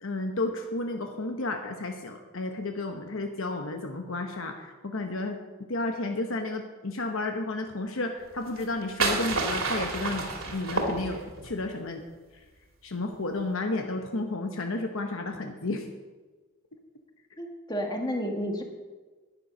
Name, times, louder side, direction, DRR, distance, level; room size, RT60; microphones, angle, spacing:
voice 1, 0.0-5.4 5.7-12.0 12.8-15.9, left 2 dB, 65° left, 4 dB, 1.0 m, -32 dB
sound 1, 8.5-11.5, right 3 dB, 65° right, 2.2 m, -29 dB
voice 2, 17.4-18.6, equal, 20° left, 3 dB, 1.3 m, -31 dB
10.5 x 9.9 x 6.2 m, 1.3 s
head